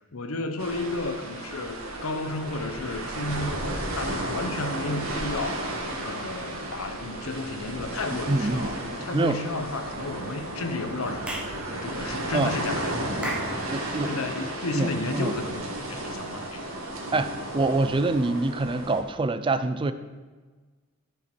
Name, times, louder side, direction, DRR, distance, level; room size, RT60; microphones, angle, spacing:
voice 1, 0.1-11.2 11.7-13.7 14.0-16.6, left 2 dB, 85° left, 0.9 m, -33 dB
sound 1, 0.6-19.0, right 1 dB, 75° right, 1.9 m, -34 dB
voice 2, 8.3-8.7 9.1-9.4 12.3-12.5 13.7-14.1 14.7-15.3 17.1-19.9, right 2 dB, 25° right, 0.4 m, -25 dB
Clapping / Chirp tweet, 11.3-11.6 13.2-13.6, right 1 dB, 5° right, 0.9 m, -32 dB
14.0 x 5.7 x 4.4 m
head